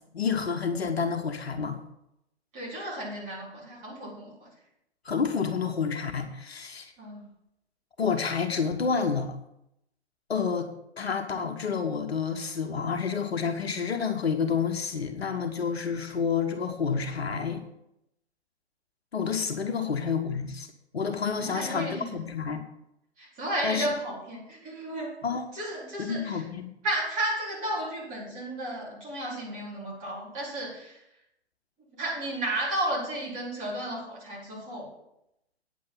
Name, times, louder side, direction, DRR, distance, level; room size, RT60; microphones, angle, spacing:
voice 1, 0.1-1.8 5.0-6.9 8.0-9.3 10.3-10.7 11.0-17.6 19.1-20.7 20.9-22.6 23.6-23.9 25.2-25.4 26.0-26.7, left 6 dB, 65° left, 5 dB, 1.3 m, -29 dB
voice 2, 2.5-4.5 7.0-7.2 19.8-19.9 21.4-22.2 23.2-25.1 25.5-26.4 26.8-31.0 32.0-34.9, right 1 dB, 25° right, -5 dB, 4.2 m, -33 dB
9.5 x 7.6 x 5.6 m, 0.83 s
figure-of-eight pair, 120°, 33 cm